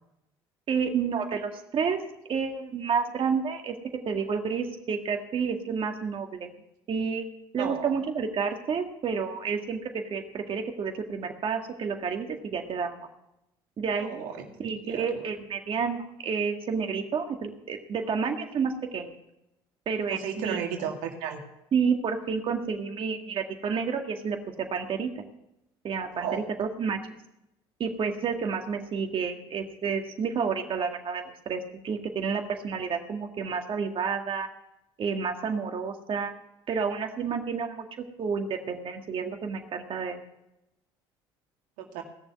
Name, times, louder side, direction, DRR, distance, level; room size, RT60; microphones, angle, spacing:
voice 1, 0.7-2.0 2.3-3.7 4.1-6.5 6.9-7.3 7.5-13.0 13.8-14.3 14.6-19.1 19.9-20.6 21.7-24.4 24.7-25.1 25.8-27.0 27.8-34.5 35.0-36.3 36.7-40.2, right 6 dB, 45° right, 4 dB, 2.0 m, -30 dB
voice 2, 7.6-7.9 14.0-14.5 14.8-15.1 20.1-21.4 26.2-26.4 41.8-42.0, right 8 dB, 75° right, 3 dB, 2.1 m, -33 dB
17.5 x 7.0 x 9.7 m, 0.85 s
hypercardioid pair, 70°, 12 cm